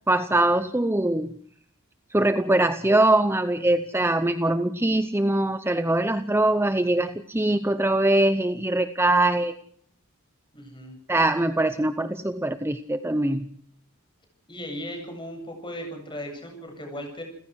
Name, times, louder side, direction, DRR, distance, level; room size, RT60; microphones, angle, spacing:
voice 1, 0.1-1.4 2.1-9.5 11.1-13.5, right 1 dB, 10° right, 10 dB, 0.8 m, -22 dB
voice 2, 10.5-10.9 14.5-17.2, equal, 20° left, 4 dB, 7.9 m, -37 dB
29.5 x 15.5 x 6.4 m, 0.64 s
head